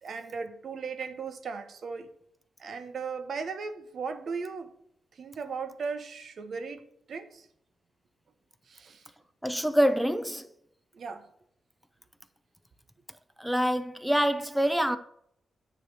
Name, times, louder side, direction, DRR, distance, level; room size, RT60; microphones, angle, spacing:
voice 1, 0.0-2.1 2.6-4.7 5.1-6.8 7.1-7.5 8.7-9.0 10.9-11.3, right 5 dB, 55° right, 0.8 m, -37 dB
voice 2, 9.4-10.5 13.4-15.0, equal, ahead, 0.5 m, -25 dB
9.3 x 3.2 x 6.2 m
wide cardioid pair, 120°, 0 cm